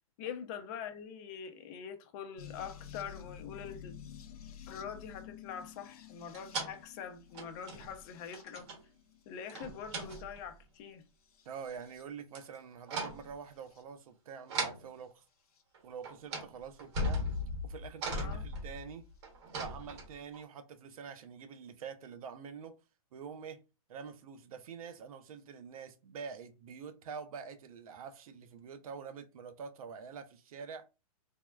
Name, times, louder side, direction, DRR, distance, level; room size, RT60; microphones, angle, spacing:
voice 1, 0.2-3.9 4.7-8.7 9.3-11.0 18.1-18.4, left 7 dB, 30° left, 0.4 m, -44 dB
sound 1, 2.4-10.5 11.2-12.0 13.2-13.8 15.6-15.7 17.4-17.5, left 9 dB, 80° left, 0.6 m, -52 dB
sound 2, 6.3-6.8 7.3-8.0 8.3-8.8 9.5-10.5 12.3-12.6 12.9-13.3 14.5-14.8 15.7-15.8 16.0-16.5 16.8-20.4, equal, 50° right, 1.0 m, -38 dB
voice 2, 11.5-15.2 15.8-17.2 17.6-19.1 19.5-22.8 23.1-23.6 23.9-30.8, right 6 dB, 70° right, 0.6 m, -46 dB
3.5 x 2.1 x 2.2 m
hypercardioid pair, 150°, 19 cm